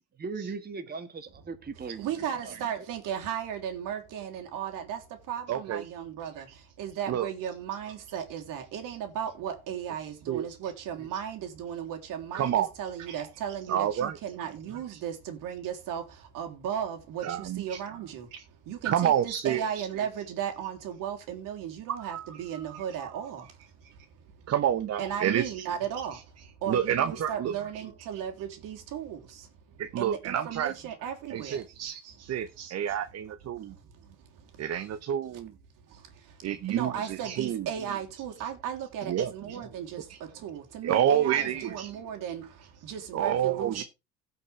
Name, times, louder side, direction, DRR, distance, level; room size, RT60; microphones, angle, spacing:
voice 1, 0.2-2.1 2.4-2.9, right 4 dB, 25° right, 1.7 m, -38 dB
voice 2, 1.8-24.1 25.0-32.2 32.6-32.7 33.5-34.6 35.9-43.8, right 9 dB, 65° right, 3.3 m, -36 dB
voice 3, 5.5-5.9 7.1-7.3 10.3-10.5 12.3-12.7 13.7-14.2 14.9-15.0 17.2-17.8 18.8-19.6 22.0-22.3 22.7-23.1 24.5-25.7 26.1-26.2 26.7-27.5 29.8-30.7 31.3-31.6 32.2-33.7 34.6-35.5 36.4-37.7 38.4-38.5 39.1-39.6 40.1-40.2 40.8-42.0 43.1-43.8, right 10 dB, 45° right, 1.1 m, -29 dB
17.0 x 6.0 x 3.4 m
supercardioid pair, 85°, 35 cm